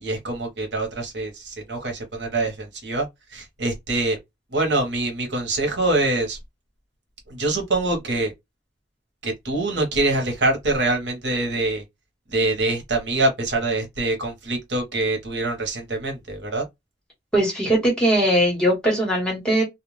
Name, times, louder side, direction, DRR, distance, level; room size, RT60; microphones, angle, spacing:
voice 1, 0.0-4.2 4.5-6.4 7.3-8.3 9.2-11.8 12.3-16.6, right 2 dB, 75° right, 1.1 m, -24 dB
voice 2, 17.3-19.6, right 1 dB, 5° left, 1.3 m, -20 dB
2.4 x 2.2 x 3.1 m
head